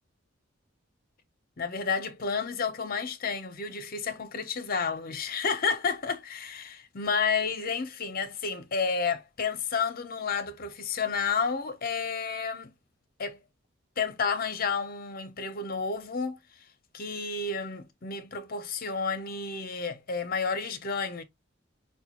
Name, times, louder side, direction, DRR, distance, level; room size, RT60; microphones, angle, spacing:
voice 1, 1.6-12.7 13.2-13.4 14.0-16.4 16.9-21.2, left 5 dB, 50° left, 0.8 m, -31 dB
5.1 x 2.2 x 2.9 m
head